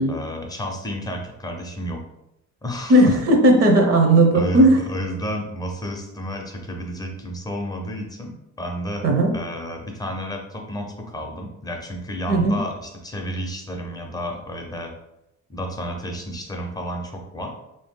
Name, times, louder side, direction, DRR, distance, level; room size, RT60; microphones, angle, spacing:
voice 1, 0.1-2.0 2.6-3.2 4.3-9.1 9.3-14.9 15.5-17.5, equal, 15° left, 1 dB, 0.6 m, -31 dB
voice 2, 2.9-4.8 9.0-9.3 12.3-12.6, right 1 dB, 50° right, 2 dB, 0.7 m, -16 dB
3.4 x 2.7 x 3.6 m, 0.85 s
cardioid pair, 140°, 30 cm